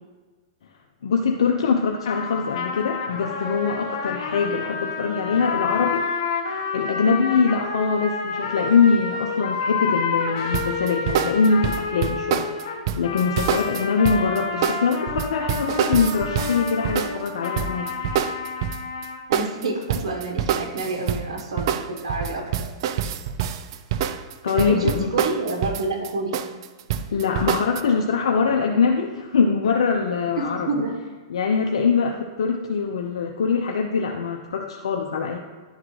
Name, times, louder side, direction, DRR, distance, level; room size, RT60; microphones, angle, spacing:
voice 1, 1.0-6.0 6.4-17.9 24.4-25.2 27.1-30.7 31.3-35.4, left 5 dB, 85° left, 1 dB, 0.6 m, -23 dB
sound 1, 2.0-19.2, left 5 dB, 70° left, 1.2 m, -29 dB
sound 2, 10.5-19.1 19.3-27.8, right 9 dB, 55° right, 0.4 m, -26 dB
voice 2, 19.3-22.7 24.5-26.4 30.4-30.9, right 2 dB, 80° right, 0 dB, 1.2 m, -28 dB
11.0 x 3.7 x 3.2 m, 1.4 s
hypercardioid pair, 135°, 3 cm